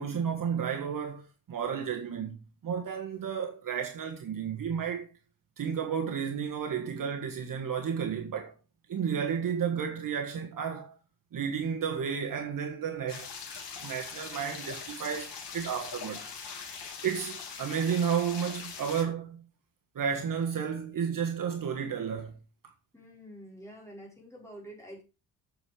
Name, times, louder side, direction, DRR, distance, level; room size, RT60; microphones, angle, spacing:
voice 1, 0.0-5.1 5.6-8.5 8.9-11.0 11.3-13.3 13.8-16.2 17.0-19.4 19.9-22.4, right 7 dB, 50° right, 1.5 m, -32 dB
sound 1, 13.1-19.0, left 6 dB, 80° left, 3.3 m, -42 dB
voice 2, 22.9-25.0, equal, 5° left, 4.9 m, -47 dB
8.5 x 6.5 x 5.0 m
cardioid pair, 145°, 42 cm